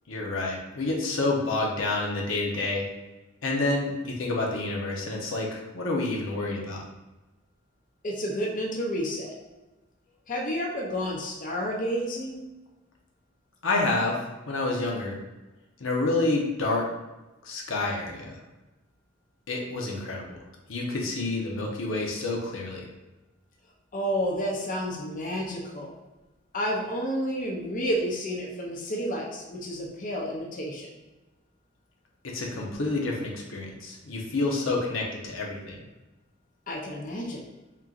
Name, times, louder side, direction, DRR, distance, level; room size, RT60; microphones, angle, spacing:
voice 1, 0.1-2.9 3.4-6.8 13.6-14.2 14.5-15.2 15.8-16.9 17.4-18.3 19.5-20.4 20.7-22.9 32.2-35.8, left 2 dB, 80° left, -2 dB, 0.8 m, -28 dB
voice 2, 8.0-9.3 10.3-12.4 23.9-25.9 26.5-30.9 36.7-37.4, equal, 40° left, -2 dB, 0.6 m, -30 dB
4.3 x 3.7 x 2.4 m, 1.1 s
head